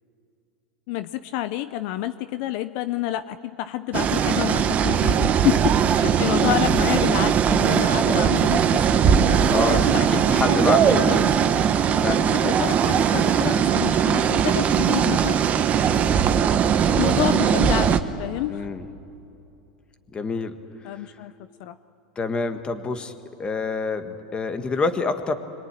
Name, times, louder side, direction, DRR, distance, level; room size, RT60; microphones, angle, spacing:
voice 1, 0.9-11.4 11.9-15.4 15.7-16.2 17.0-18.7 20.8-21.3 21.6-21.8, left 14 dB, 60° left, 12 dB, 0.7 m, -29 dB
sound 1, 3.9-18.0, right 8 dB, 35° right, 1.3 m, -20 dB
voice 2, 9.5-11.1 12.0-13.2 18.5-18.9 20.1-20.5 20.8-21.2 22.2-23.1 23.4-25.3, left 4 dB, 20° left, 8 dB, 1.8 m, -28 dB
25.5 x 23.0 x 9.9 m, 2.7 s
supercardioid pair, 120°, 5 cm